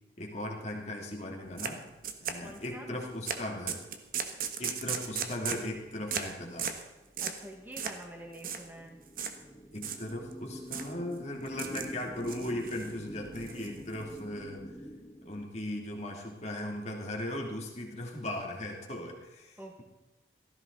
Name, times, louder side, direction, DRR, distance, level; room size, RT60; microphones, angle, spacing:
voice 1, 0.2-1.8 2.2-3.8 4.6-6.7 9.7-14.6 15.2-19.8, left 1 dB, 35° left, 0 dB, 2.8 m, -38 dB
sound 1, 1.6-1.7 2.0-2.7 3.3-3.4 3.7-5.7 6.1-6.3 6.6-6.8 7.2-7.4 7.8-8.0 8.3-8.6 9.2-9.4 9.8-10.3 10.7-10.9 11.5-11.9 12.2-12.9 13.3-14.2, right 7 dB, 50° right, 1.3 m, -36 dB
voice 2, 2.4-2.9 7.2-9.0 19.6-19.8, right 1 dB, 10° right, 1 dB, 1.8 m, -46 dB
sound 2, 7.1-15.9, equal, 15° left, 1.5 m, -47 dB
17.0 x 14.5 x 4.0 m, 1.1 s
head